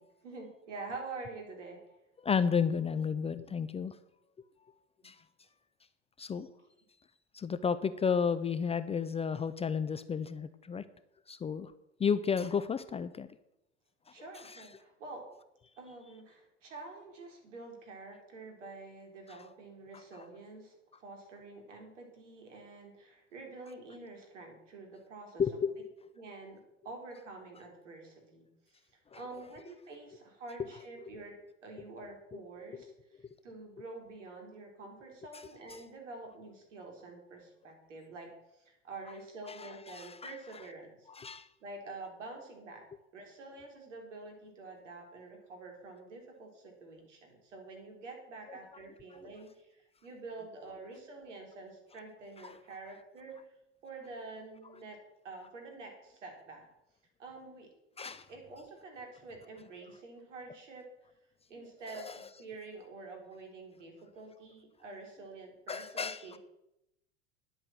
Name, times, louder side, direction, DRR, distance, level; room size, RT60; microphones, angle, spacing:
voice 1, 0.2-1.8 6.3-6.4 14.1-15.2 15.8-25.4 26.2-26.6 26.8-28.5 28.9-31.4 31.6-41.1 41.6-42.8 43.1-53.5 53.8-55.0 55.2-56.6 57.2-57.7 58.3-60.9 61.5-66.4, right 3 dB, 75° right, 3 dB, 3.9 m, -47 dB
voice 2, 2.2-3.9 5.0-5.1 6.2-6.5 7.3-10.8 11.3-11.7 12.0-13.3 14.5-14.6 25.4-25.9 29.1-29.2 39.5-40.3 41.2-41.5 52.4-52.6 58.0-58.2 62.0-62.1 65.7-66.2, left 6 dB, 15° left, 14 dB, 0.5 m, -32 dB
11.0 x 8.0 x 7.7 m, 0.85 s
hypercardioid pair, 85°, 37 cm